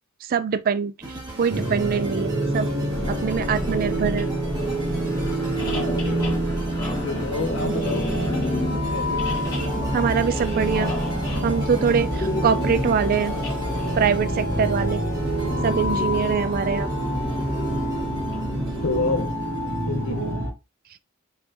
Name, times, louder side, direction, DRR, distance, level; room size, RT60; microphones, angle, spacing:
voice 1, 0.2-2.7 3.1-4.3 9.9-10.9 11.4-13.4 13.9-15.0 15.6-16.9 20.2-20.4, right 6 dB, 45° right, 0.3 m, -24 dB
sound 1, 1.0-20.3, right 1 dB, 20° right, 1.5 m, -39 dB
sound 2, 1.5-20.5, right 1 dB, 65° right, 1.4 m, -27 dB
sound 3, 2.9-19.2, left 1 dB, 20° left, 1.2 m, -31 dB
voice 2, 5.6-6.4 7.0-9.4 18.8-19.4 19.9-20.4, left 3 dB, 75° left, 0.7 m, -30 dB
4.4 x 3.5 x 2.6 m
head